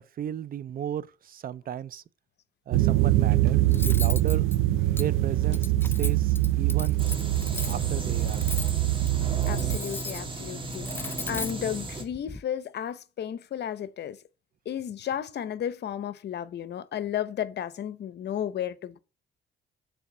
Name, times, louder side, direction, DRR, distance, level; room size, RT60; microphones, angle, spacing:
voice 1, 0.0-2.0 2.7-4.4 4.9-7.0 7.7-8.9, right 10 dB, 45° right, 0.5 m, -35 dB
sound 1, 2.7-9.8, right 16 dB, 90° right, 0.5 m, -24 dB
Cutlery silverware, 3.7-12.4, left 3 dB, 10° left, 0.4 m, -38 dB
sound 2, 7.0-12.0, right 2 dB, 25° right, 1.7 m, -36 dB
voice 2, 9.5-14.2 14.7-19.0, left 9 dB, 60° left, 0.8 m, -33 dB
7.1 x 3.4 x 6.1 m
cardioid pair, 90°, 20 cm